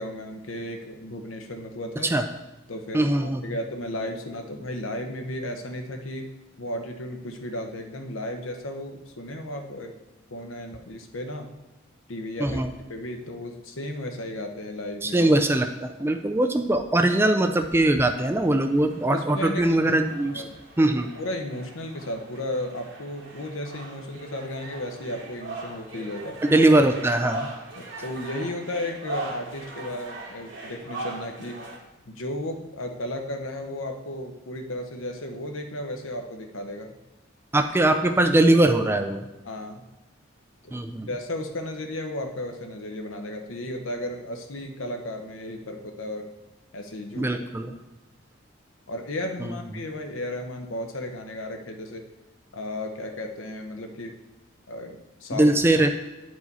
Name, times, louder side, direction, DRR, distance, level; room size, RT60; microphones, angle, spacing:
voice 1, 0.0-2.1 2.7-6.3 6.6-10.0 10.3-11.5 12.1-12.6 12.9-15.3 19.1-19.8 20.3-20.6 21.1-26.4 27.8-31.6 32.1-37.0 39.4-39.8 40.6-46.3 46.7-47.4 48.9-52.0 52.5-54.1 54.7-55.5, left 1 dB, 75° left, 4 dB, 0.9 m, -34 dB
voice 2, 2.9-3.4 12.4-12.7 15.0-20.4 20.8-21.1 26.4-27.5 37.5-39.2 40.7-41.1 47.2-47.7 49.4-49.6 55.3-55.9, right 1 dB, 10° right, 6 dB, 0.3 m, -21 dB
sound 1, 17.5-31.8, right 2 dB, 65° right, 1.8 m, -40 dB
9.0 x 4.8 x 4.1 m, 1.1 s
head